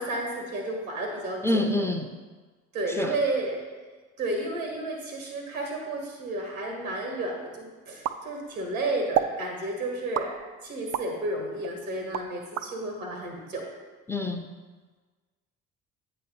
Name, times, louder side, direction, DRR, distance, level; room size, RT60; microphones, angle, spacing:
voice 1, 0.0-1.6 2.7-3.7 4.2-10.3 10.6-13.7, right 2 dB, 85° right, 1 dB, 1.4 m, -32 dB
voice 2, 1.4-2.1 2.9-3.2 14.1-14.5, left 1 dB, 5° left, 5 dB, 0.6 m, -26 dB
sound 1, 8.0-8.7 9.1-9.4 10.1-11.1 11.6-12.7, right 9 dB, 40° right, 0.4 m, -30 dB
8.3 x 3.0 x 5.4 m, 1.4 s
figure-of-eight pair, 45°, 41 cm